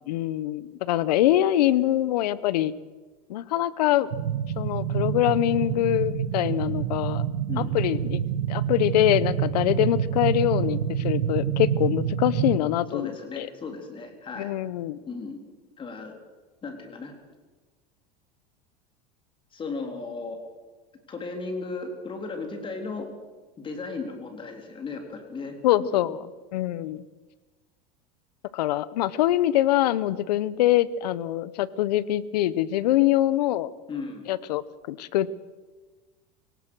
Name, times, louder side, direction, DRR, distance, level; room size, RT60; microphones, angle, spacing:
voice 1, 0.1-2.7 3.3-4.1 4.6-7.2 7.6-8.2 8.5-13.5 14.4-15.0 25.6-27.0 28.5-33.7 34.3-35.3, left 13 dB, 85° left, 18 dB, 1.0 m, -24 dB
sound 1, 4.1-12.6, right 9 dB, 85° right, 1.6 m, -27 dB
voice 2, 12.9-14.5 15.1-15.5 15.8-16.2 16.6-17.1 19.5-20.4 21.1-23.1 23.6-26.1 33.9-34.3, left 4 dB, 25° left, 4 dB, 3.5 m, -36 dB
23.0 x 18.5 x 6.3 m, 1.3 s
supercardioid pair, 130°, 20 cm